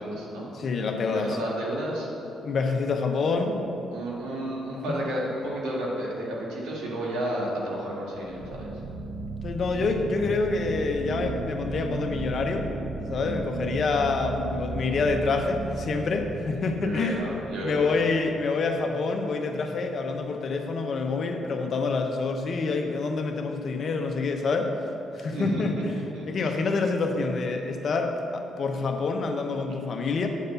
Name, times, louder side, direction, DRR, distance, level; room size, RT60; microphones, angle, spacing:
voice 1, 0.0-0.5 1.1-2.1 3.9-8.7 16.5-17.9 25.1-25.8 26.1-26.5, right 1 dB, 85° right, -4 dB, 2.0 m, -32 dB
voice 2, 0.5-1.4 2.4-3.6 9.4-12.7 13.0-17.2 17.6-24.7 25.1-26.0 26.3-30.3, left 4 dB, 55° left, 4 dB, 0.8 m, -27 dB
sound 1, 3.5-3.8 8.2-18.4, right 2 dB, 35° right, 0.8 m, -35 dB
8.3 x 4.2 x 6.9 m, 2.9 s
cardioid pair, 90°, 0 cm